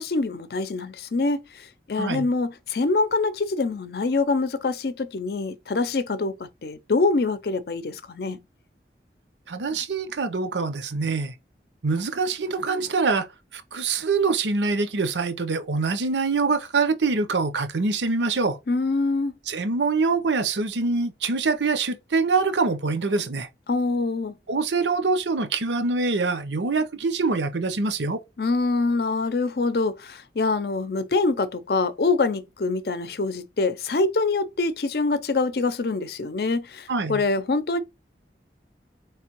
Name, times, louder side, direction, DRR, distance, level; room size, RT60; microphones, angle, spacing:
voice 1, 0.0-1.4 1.9-6.4 6.6-8.4 18.7-19.3 23.7-24.3 28.4-37.8, left 3 dB, 60° left, 0.5 m, -25 dB
voice 2, 9.5-11.3 11.8-13.3 13.5-18.6 19.5-23.5 24.5-28.2 36.9-37.2, right 4 dB, 90° right, 0.8 m, -24 dB
4.5 x 3.2 x 3.0 m
head